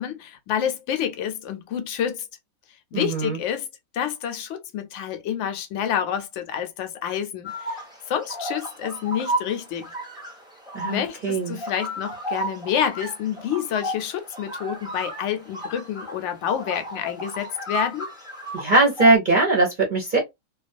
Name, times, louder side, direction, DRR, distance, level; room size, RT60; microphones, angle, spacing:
voice 1, 0.0-2.3 2.9-3.7 3.9-7.8 8.1-9.9 10.8-18.1, left 9 dB, 70° left, 0.8 m, -28 dB
voice 2, 2.9-3.4 10.7-11.6 18.5-20.2, right 2 dB, 45° right, 0.7 m, -20 dB
sound 1, 7.4-19.2, right 1 dB, 5° right, 0.7 m, -33 dB
2.3 x 2.2 x 2.5 m
omnidirectional pair, 1.4 m